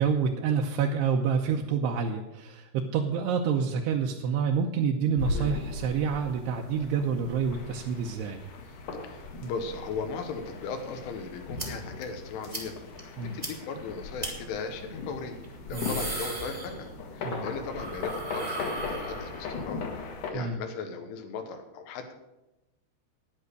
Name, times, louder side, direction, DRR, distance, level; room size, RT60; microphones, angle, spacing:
voice 1, 0.0-8.4 9.4-9.5 13.2-13.4 15.7-16.0 17.2-17.5 20.3-20.6, right 6 dB, 80° right, 1 dB, 2.5 m, -28 dB
sound 1, 5.2-20.3, left 3 dB, 60° left, 2.4 m, -38 dB
voice 2, 9.0-12.8 13.2-15.4 15.7-19.9 20.3-22.1, left 5 dB, 85° left, 6 dB, 3.8 m, -37 dB
sound 2, 11.6-11.7 12.0-12.1 12.5-12.7 13.0-13.1 13.4-13.5 14.2-14.3 15.4-17.1 17.4-19.6, right 2 dB, 30° right, 0.7 m, -37 dB
10.5 x 9.8 x 6.6 m, 0.97 s
omnidirectional pair, 5.5 m